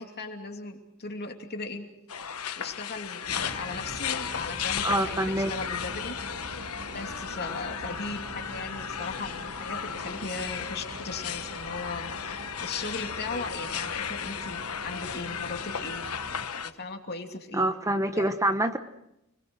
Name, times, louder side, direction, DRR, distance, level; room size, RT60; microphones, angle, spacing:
voice 1, 0.0-1.9 2.6-6.2 6.9-12.1 12.6-16.0 16.3-17.7 18.1-18.3, left 3 dB, 50° left, 4 dB, 2.8 m, -38 dB
sound 1, 2.1-16.7, left 8 dB, 85° left, 1.2 m, -35 dB
sound 2, 3.3-16.5, right 2 dB, 65° right, 2.0 m, -43 dB
voice 2, 4.8-5.5 17.5-18.8, right 1 dB, 15° right, 8 dB, 1.0 m, -26 dB
29.5 x 21.5 x 6.4 m, 0.82 s
head